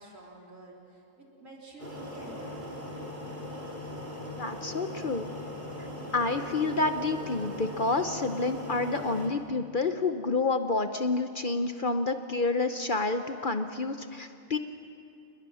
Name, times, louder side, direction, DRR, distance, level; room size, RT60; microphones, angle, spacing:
voice 1, 0.0-2.7, right 2 dB, 60° right, -2 dB, 4.1 m, -49 dB
sound 1, 1.8-9.3, left 1 dB, 30° right, 3.1 m, -39 dB
voice 2, 4.3-5.3 5.8-5.9 6.1-14.6, left 3 dB, 40° left, 8 dB, 0.9 m, -29 dB
29.0 x 20.5 x 6.3 m, 2.7 s
omnidirectional pair, 1.5 m